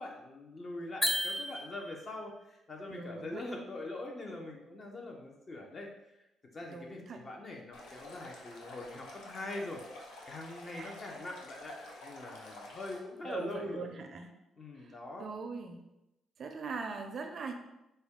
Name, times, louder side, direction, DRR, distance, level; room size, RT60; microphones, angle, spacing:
voice 1, 0.0-5.9 6.5-9.8 10.3-13.9 14.6-15.3, left 2 dB, 40° left, 1 dB, 0.8 m, -43 dB
sound 1, 1.0-2.2, equal, 10° left, 0.4 m, -33 dB
voice 2, 2.9-3.4 6.6-7.2 10.7-11.0 13.2-14.3 14.8-15.8 16.4-17.5, right 4 dB, 55° right, 5 dB, 0.4 m, -41 dB
Stream, 7.7-13.0, left 2 dB, 85° left, 0.6 m, -49 dB
4.0 x 2.2 x 3.6 m, 0.90 s
cardioid pair, 90°, 0 cm